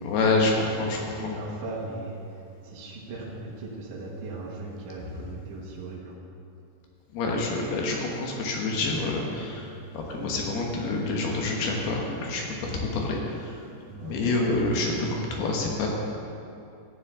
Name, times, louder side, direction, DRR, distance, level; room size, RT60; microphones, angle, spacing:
voice 1, 0.0-1.3 7.1-13.6 14.0-15.9, left 3 dB, 70° left, -1 dB, 2.8 m, -27 dB
voice 2, 0.8-2.2 2.6-6.2 9.5-9.7 13.8-14.2, right 3 dB, 65° right, -6 dB, 2.1 m, -38 dB
14.5 x 9.6 x 3.7 m, 2.6 s
omnidirectional pair, 5.7 m